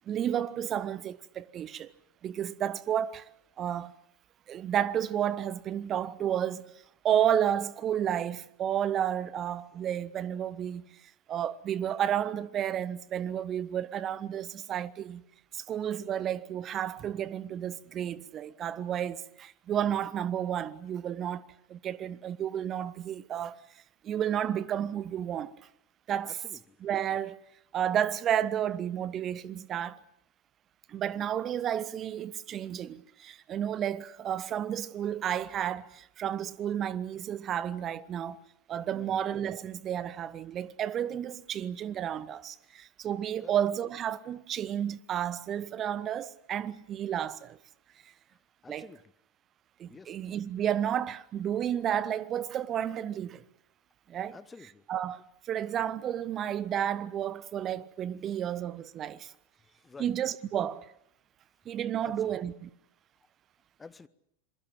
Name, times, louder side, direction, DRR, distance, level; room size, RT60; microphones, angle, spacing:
voice 1, 0.1-1.9 2.2-3.3 3.6-3.9 4.5-15.2 15.5-23.6 24.0-25.5 26.1-26.4 26.8-27.4 27.7-30.0 30.9-38.4 38.7-47.6 48.7-48.9 49.8-53.4 54.1-54.4 54.9-59.3 60.0-60.9 61.6-62.7, right 10 dB, 30° right, 1.1 m, -32 dB
voice 2, 26.2-26.8 38.9-39.2 43.4-43.6 48.6-49.1 49.9-50.2 54.3-54.9 59.8-60.1 62.0-62.4 63.8-64.1, left 4 dB, 15° left, 1.0 m, -50 dB
27.0 x 22.5 x 7.7 m
figure-of-eight pair, 90°, 0 cm